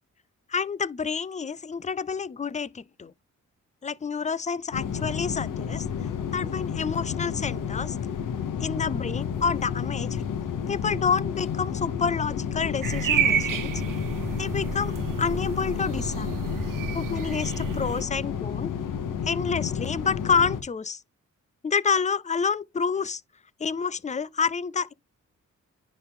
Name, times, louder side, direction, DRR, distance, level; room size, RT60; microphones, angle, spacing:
voice 1, 0.5-3.1 3.8-5.9 6.3-8.0 8.6-10.2 10.7-13.7 14.3-16.4 16.9-18.7 19.3-21.0 21.6-23.2 23.6-24.9, left 5 dB, 25° left, 0.5 m, -28 dB
sound 1, 4.7-20.6, left 7 dB, 80° left, 1.2 m, -31 dB
sound 2, 12.8-18.0, right 8 dB, 85° right, 1.3 m, -30 dB
10.0 x 3.9 x 3.6 m
cardioid pair, 75°, 32 cm